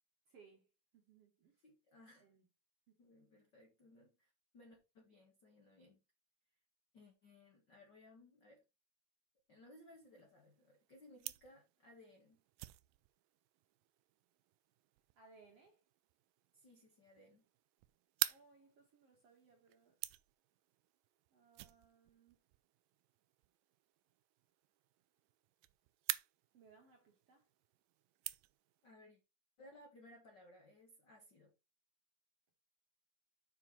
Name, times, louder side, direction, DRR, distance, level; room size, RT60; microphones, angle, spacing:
voice 1, 0.3-1.6 2.2-2.5 2.9-3.0 15.2-15.8 18.3-20.0 21.3-22.4 26.5-27.5, right 4 dB, 55° right, 1.8 m, -66 dB
voice 2, 1.6-2.3 3.0-6.0 6.9-8.6 9.5-12.4 16.5-17.5 28.8-29.2 29.6-31.5, left 1 dB, 55° left, 1.2 m, -62 dB
sound 1, 9.8-28.9, right 18 dB, 85° right, 1.9 m, -49 dB
7.4 x 5.7 x 4.3 m
omnidirectional pair, 4.4 m